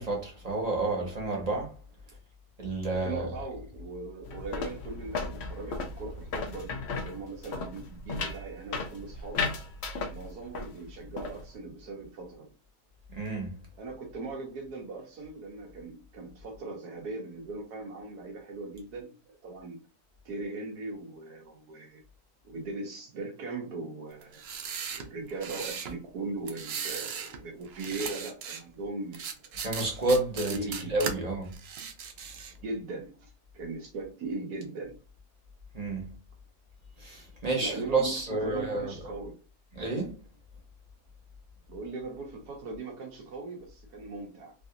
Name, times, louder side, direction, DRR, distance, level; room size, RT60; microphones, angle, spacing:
voice 1, 0.0-1.7 2.6-3.3 13.1-13.5 29.6-30.6 30.9-31.5 35.7-36.1 37.0-38.9 39.7-40.1, right 2 dB, 30° right, 0.9 m, -30 dB
voice 2, 2.9-9.5 10.1-12.5 13.8-19.8 20.2-22.0 22.4-24.4 24.9-29.6 30.5-31.0 32.6-35.0 37.6-38.1 38.4-39.4 41.7-44.5, right 3 dB, 85° right, 1.4 m, -39 dB
sound 1, 4.2-10.8 11.0-11.5, left 4 dB, 60° left, 0.7 m, -36 dB
sound 2, 24.2-25.9 26.5-27.4 27.7-28.6 29.1-31.1 31.5-32.6, right 7 dB, 70° right, 0.6 m, -37 dB
3.4 x 2.4 x 2.7 m
omnidirectional pair, 1.6 m